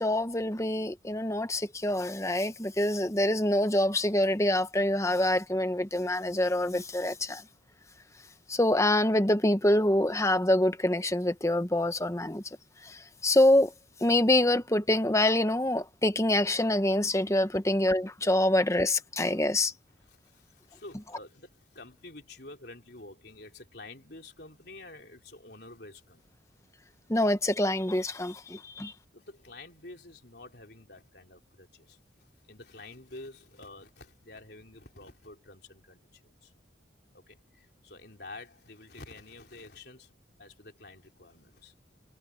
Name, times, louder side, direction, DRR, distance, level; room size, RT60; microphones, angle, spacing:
voice 1, 0.0-7.4 8.5-12.4 12.8-13.7 14.0-19.7 27.1-28.9, left 1 dB, 15° left, 1.0 m, -26 dB
voice 2, 20.0-26.3 29.1-36.5 37.1-40.1 40.4-41.7, left 2 dB, 55° left, 4.0 m, -49 dB
head